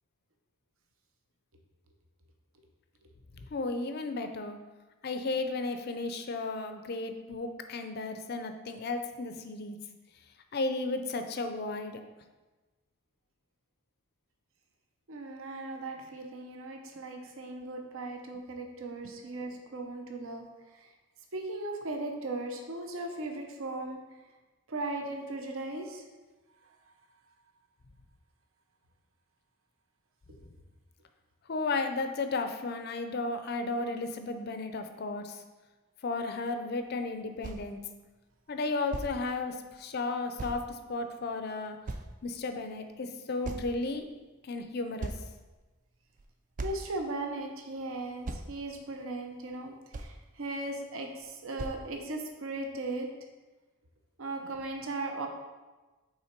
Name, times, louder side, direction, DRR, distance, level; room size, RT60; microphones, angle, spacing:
voice 1, 3.5-4.6 5.0-9.8 10.5-12.0 31.5-35.4 36.0-37.8 38.5-41.8 42.2-44.1 44.4-45.1, left 3 dB, 45° left, 7 dB, 0.4 m, -34 dB
voice 2, 15.1-20.5 20.7-20.9 21.3-24.0 24.7-26.0 46.6-53.1 54.2-55.3, right 2 dB, 70° right, 3 dB, 0.7 m, -37 dB
sound 1, 37.1-37.2 37.4-37.7 38.5-38.6 38.9-39.1 40.4-40.6 41.3-41.4 41.9-42.4 43.4-44.0 44.6-44.7 45.0-45.6 46.2-46.3 46.6-46.9 47.8-47.9 48.2-48.5 49.5-49.6 49.9-50.2 51.2-51.3 51.6-51.8, right 2 dB, 35° right, 0.3 m, -38 dB
5.6 x 3.8 x 4.4 m, 1.2 s
head